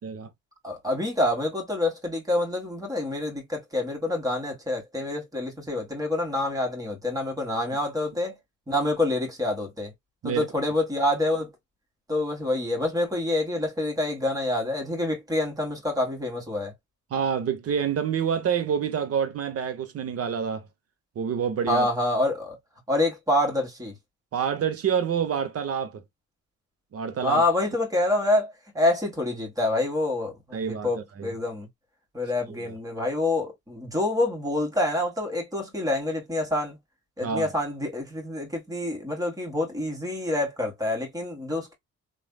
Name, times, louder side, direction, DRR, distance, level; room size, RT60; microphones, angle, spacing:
voice 1, 0.6-8.4 8.7-9.9 10.2-11.5 12.1-16.7 21.7-22.6 22.9-24.0 27.2-31.7 32.1-36.8 37.2-41.7, left 1 dB, 10° right, 1.7 m, -27 dB
voice 2, 17.1-20.7 21.2-21.9 24.3-26.0 26.9-27.4 30.5-31.3 32.5-32.7 37.2-37.5, right 7 dB, 50° right, 0.9 m, -27 dB
3.2 x 2.5 x 2.3 m
cardioid pair, 90°, 30 cm